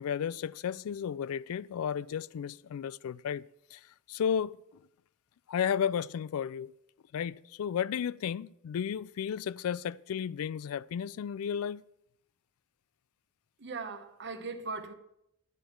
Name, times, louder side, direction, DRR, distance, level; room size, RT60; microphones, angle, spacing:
voice 1, 0.0-3.4 3.7-4.6 5.5-6.7 7.1-11.8, left 8 dB, 70° left, 0.3 m, -33 dB
voice 2, 13.6-14.9, right 4 dB, 50° right, 1.0 m, -39 dB
12.5 x 9.2 x 4.5 m
head